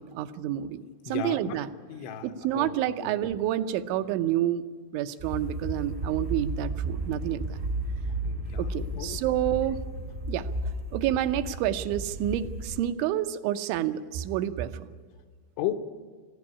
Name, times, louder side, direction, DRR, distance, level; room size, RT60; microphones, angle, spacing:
voice 1, 0.0-1.7 2.2-4.7 4.9-7.5 8.6-9.8 10.3-10.5 10.9-14.9, right 12 dB, 85° right, 9 dB, 3.2 m, -29 dB
voice 2, 1.1-1.6 1.9-2.7 3.0-3.1 8.2-8.7 9.0-9.2 15.6-15.7, left 10 dB, 80° left, 7 dB, 3.4 m, -34 dB
sound 1, 5.2-12.8, right 1 dB, 45° right, 0.7 m, -33 dB
20.0 x 15.0 x 9.8 m, 1.5 s
omnidirectional pair, 5.3 m